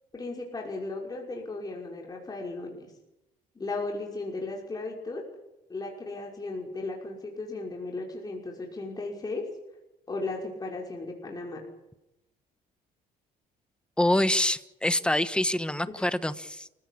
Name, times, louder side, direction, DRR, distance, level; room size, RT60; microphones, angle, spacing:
voice 1, 0.1-2.9 3.6-5.2 5.7-9.5 10.1-11.6 15.9-16.1, left 3 dB, 25° left, -1 dB, 5.7 m, -36 dB
voice 2, 14.0-16.7, left 1 dB, 5° left, 13 dB, 1.3 m, -26 dB
29.0 x 16.0 x 8.7 m, 0.92 s
cardioid pair, 105°, 16 cm